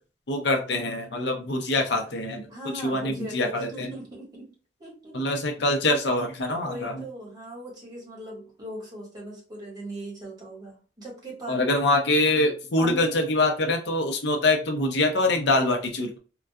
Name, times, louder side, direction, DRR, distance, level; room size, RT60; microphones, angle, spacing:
voice 1, 0.3-3.9 5.1-7.0 11.5-16.2, left 2 dB, 65° left, 3 dB, 0.7 m, -24 dB
voice 2, 2.5-4.5 4.8-5.2 6.6-11.7 12.8-13.1, right 1 dB, 25° right, -4 dB, 1.6 m, -39 dB
3.8 x 2.3 x 2.2 m, 0.36 s
head